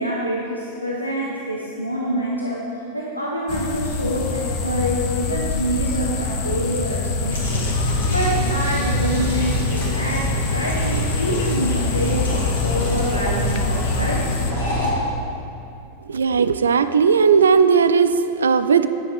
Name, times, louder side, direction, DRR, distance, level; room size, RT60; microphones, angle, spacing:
voice 1, 0.0-2.6 2.9-14.3, equal, 90° left, -4 dB, 0.7 m, -26 dB
sound 1, 3.5-14.5, left 4 dB, 45° left, 0.6 m, -26 dB
sound 2, 7.3-14.9, left 1 dB, 65° left, 1.8 m, -25 dB
voice 2, 16.1-18.9, right 6 dB, 70° right, 11 dB, 0.3 m, -17 dB
9.1 x 7.2 x 3.4 m, 2.6 s
figure-of-eight pair, 90°, 0 cm